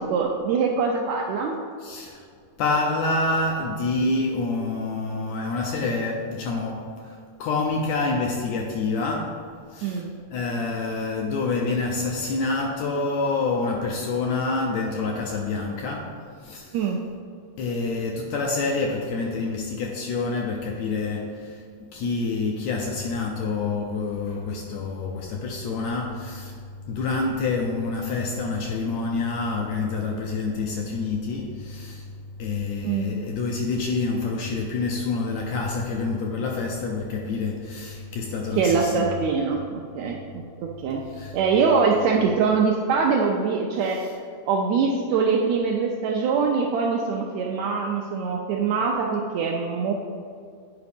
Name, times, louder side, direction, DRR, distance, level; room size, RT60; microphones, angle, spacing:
voice 1, 0.0-1.6 9.8-10.1 16.7-17.0 32.8-33.2 38.6-40.4 40.8-41.0 41.3-44.2 44.5-49.9, right 5 dB, 80° right, 0 dB, 1.6 m, -23 dB
voice 2, 1.8-2.2 2.6-16.8 17.6-21.6 21.9-26.6 26.9-32.1 32.4-39.1 41.1-41.3 44.0-44.1, left 3 dB, 80° left, 0 dB, 1.6 m, -27 dB
9.3 x 4.8 x 3.5 m, 2.2 s
omnidirectional pair, 3.6 m